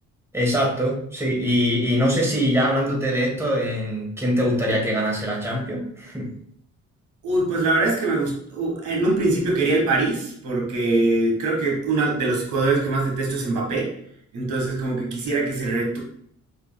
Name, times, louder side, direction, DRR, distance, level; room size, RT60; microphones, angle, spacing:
voice 1, 0.3-6.3, equal, 10° right, -3 dB, 1.8 m, -23 dB
voice 2, 7.2-13.9 14.3-16.0, right 2 dB, 80° right, -1 dB, 1.6 m, -23 dB
5.1 x 4.5 x 2.2 m, 0.67 s
cardioid pair, 90°, 30 cm